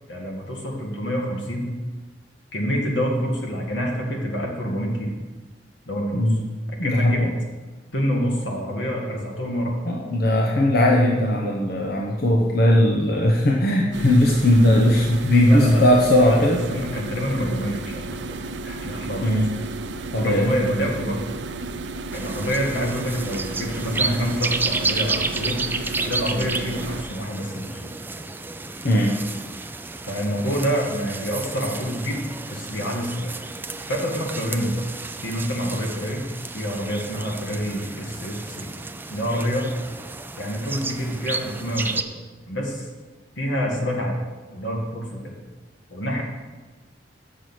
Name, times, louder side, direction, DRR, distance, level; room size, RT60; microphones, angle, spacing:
voice 1, 0.1-1.8 2.5-5.1 5.9-6.2 6.8-7.3 7.9-9.8 15.5-19.3 20.2-21.2 22.1-25.7 26.0-27.9 30.1-32.2 32.5-33.3 33.9-34.8 35.2-36.3 36.5-38.8 39.1-39.7 40.4-42.1 42.5-42.9 43.4-44.2 44.5-45.4 45.9-46.2, equal, 85° left, 0 dB, 1.9 m, -27 dB
voice 2, 6.8-7.3 9.8-16.6 19.2-19.5 20.1-20.5 28.8-29.2, left 1 dB, 60° left, -1 dB, 1.0 m, -18 dB
sound 1, 13.9-27.0, right 2 dB, 75° right, 0.6 m, -33 dB
sound 2, 22.1-42.0, right 3 dB, 10° right, 0.4 m, -31 dB
7.4 x 6.5 x 6.2 m, 1.3 s
head